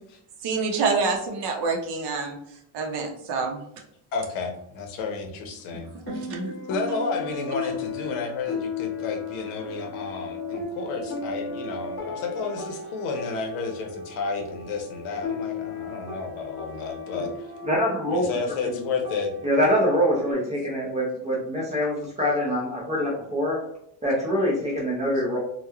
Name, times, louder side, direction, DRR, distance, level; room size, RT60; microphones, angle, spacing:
voice 1, 0.4-2.4 2.7-3.6 6.1-6.5, right 4 dB, 55° right, 3 dB, 0.6 m, -27 dB
voice 2, 4.1-5.9 6.7-17.3 18.1-19.3, left 4 dB, 80° left, 2 dB, 0.8 m, -31 dB
sound 1, 6.0-20.3, left 3 dB, 30° left, 1.0 m, -35 dB
voice 3, 17.7-18.8 19.4-23.6 24.0-25.4, equal, 15° right, -4 dB, 0.3 m, -24 dB
3.0 x 2.1 x 2.3 m, 0.73 s
cardioid pair, 160°, 49 cm